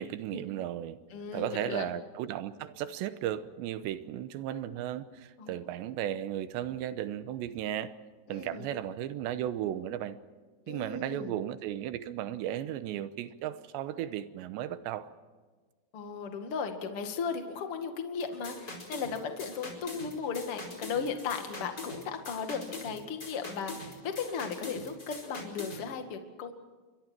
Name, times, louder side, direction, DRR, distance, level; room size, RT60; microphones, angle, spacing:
voice 1, 0.0-1.0 1.3-8.0 8.3-10.2 10.7-15.1, right 11 dB, 90° right, 12 dB, 3.2 m, -35 dB
voice 2, 1.1-1.9 5.4-5.5 8.3-8.7 10.7-11.4 15.9-26.5, left 5 dB, 40° left, 5 dB, 2.3 m, -36 dB
sound 1, 18.2-25.8, left 2 dB, 25° left, 5.1 m, -43 dB
29.0 x 24.0 x 4.6 m, 1.4 s
omnidirectional pair, 4.9 m